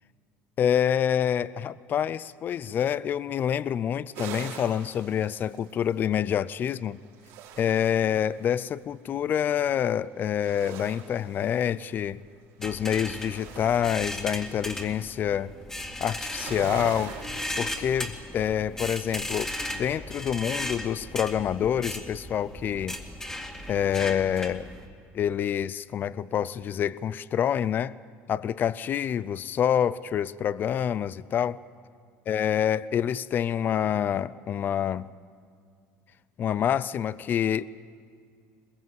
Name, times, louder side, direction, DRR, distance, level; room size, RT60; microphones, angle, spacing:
voice 1, 0.6-7.0 7.6-12.2 12.6-15.5 16.0-17.1 17.6-23.0 23.7-24.7 25.1-27.9 28.3-31.6 32.3-35.1 36.4-37.6, left 9 dB, 35° left, 19 dB, 0.5 m, -27 dB
sound 1, 4.1-6.1 6.9-8.6 10.3-12.1 12.6-15.0 16.1-17.9, right 8 dB, 80° right, 3.8 m, -43 dB
sound 2, 12.6-24.9, left 1 dB, 10° left, 2.1 m, -36 dB
21.5 x 21.5 x 7.8 m, 2.2 s
cardioid pair, 130°, 6 cm